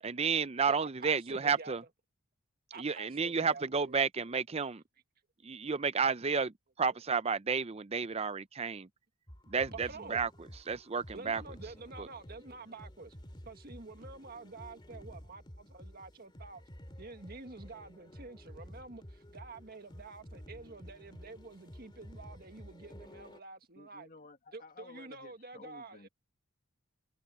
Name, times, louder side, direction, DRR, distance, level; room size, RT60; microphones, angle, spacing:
voice 1, 0.0-1.8 2.8-4.8 5.4-8.9 9.5-10.3 10.7-11.4 12.0-12.1, right 5 dB, 25° right, 0.5 m, -31 dB
voice 2, 0.7-1.8 2.7-4.0 9.7-10.2 11.1-13.2 13.5-16.6 17.0-24.1 24.5-26.1, right 3 dB, 45° right, 1.7 m, -48 dB
sound 1, 9.3-23.4, equal, 20° left, 2.4 m, -51 dB
voice 3, 23.7-26.1, left 3 dB, 40° left, 1.7 m, -54 dB
head